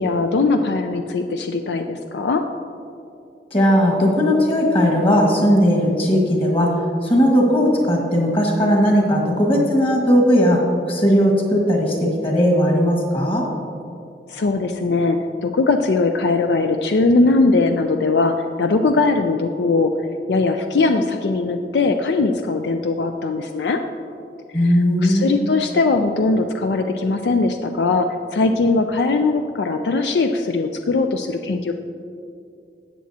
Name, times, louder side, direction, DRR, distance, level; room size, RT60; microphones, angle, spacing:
voice 1, 0.0-2.4 14.3-19.9 20.3-23.8 24.6-24.7 25.0-31.7, left 3 dB, 75° left, 6 dB, 0.4 m, -20 dB
voice 2, 3.5-13.5 24.5-25.4, equal, 30° left, -1 dB, 1.6 m, -17 dB
13.0 x 8.6 x 2.8 m, 2.5 s
head